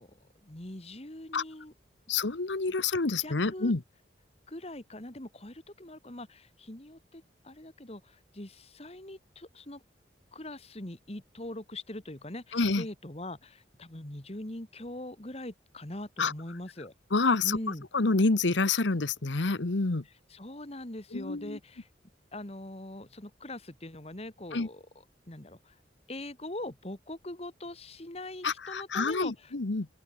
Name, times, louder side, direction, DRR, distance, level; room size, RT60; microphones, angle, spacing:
voice 1, 0.0-1.7 3.2-3.7 4.5-9.8 10.3-16.9 17.4-17.9 20.3-21.9 22.3-24.8 25.3-25.7 26.1-29.5, left 1 dB, 35° left, 2.1 m, -42 dB
voice 2, 2.1-3.8 12.5-12.8 16.2-16.3 17.1-17.6 17.9-20.0 21.1-21.6 24.5-24.7 28.4-29.9, left 3 dB, 85° left, 1.1 m, -27 dB
open air
head